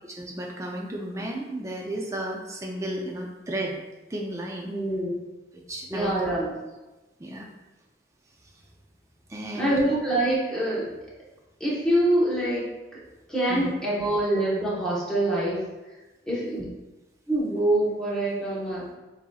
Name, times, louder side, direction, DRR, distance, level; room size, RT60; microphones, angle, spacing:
voice 1, 0.0-3.8 4.1-4.7 5.7-6.3 7.2-7.5 9.3-9.8 13.5-13.7 16.6-16.7, right 1 dB, 15° right, 0 dB, 0.4 m, -33 dB
voice 2, 4.7-5.1 5.9-6.5 9.5-10.8 11.6-12.6 12.9-13.0 13.3-15.6 16.3-16.6 17.3-18.9, right 1 dB, 5° left, -7 dB, 1.1 m, -25 dB
6.9 x 2.8 x 2.3 m, 1.1 s
head